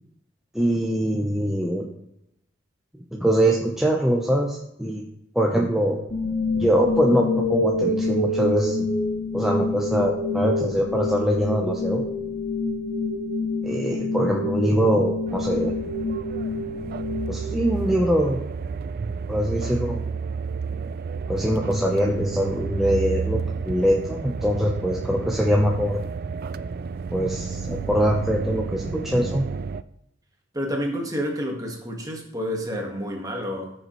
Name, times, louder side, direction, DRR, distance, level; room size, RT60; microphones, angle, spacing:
voice 1, 0.5-1.9 3.1-5.0 5.3-6.0 6.6-8.8 9.3-12.0 13.6-15.7 17.3-18.4 19.3-20.0 21.3-26.0 27.1-29.5, equal, ahead, -2 dB, 0.8 m, -23 dB
sound 1, 6.1-18.1, left 2 dB, 55° left, 2.5 m, -27 dB
sound 2, 15.3-29.8, right 5 dB, 50° right, 0.3 m, -31 dB
voice 2, 30.5-33.7, equal, 20° right, 1 dB, 1.6 m, -29 dB
14.0 x 6.8 x 3.2 m, 0.80 s
head